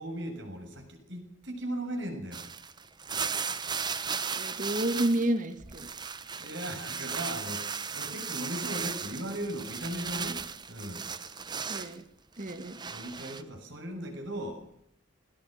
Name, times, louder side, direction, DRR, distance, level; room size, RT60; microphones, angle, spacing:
voice 1, 0.0-2.4 6.4-10.4 10.7-11.1 12.8-14.6, right 1 dB, 55° right, 4 dB, 6.7 m, -37 dB
sound 1, 2.3-5.3 5.6-12.0 12.4-13.4, right 6 dB, 20° right, 1.0 m, -36 dB
voice 2, 4.4-5.9 11.7-12.0 12.4-12.8, right 1 dB, 35° right, 10 dB, 1.8 m, -30 dB
20.5 x 19.5 x 6.5 m, 0.70 s
head